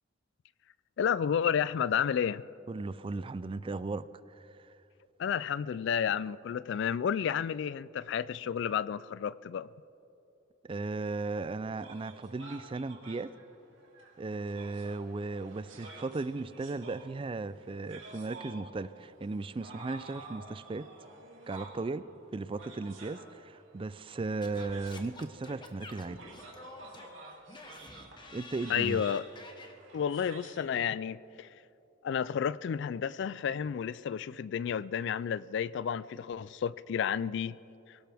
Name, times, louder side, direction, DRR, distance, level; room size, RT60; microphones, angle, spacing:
voice 1, 1.0-2.4 5.2-9.7 28.7-29.3 29.9-31.5 32.0-37.6, left 8 dB, 60° left, 0.3 m, -31 dB
voice 2, 2.7-4.7 10.7-13.3 14.2-20.9 21.5-22.1 22.3-26.2 28.3-29.0, right 3 dB, 25° right, 0.4 m, -36 dB
sound 1, 11.8-30.6, right 2 dB, 75° right, 2.5 m, -51 dB
Singing / Scratching (performance technique), 24.4-29.7, left 2 dB, 25° left, 1.2 m, -49 dB
23.5 x 17.5 x 3.5 m
head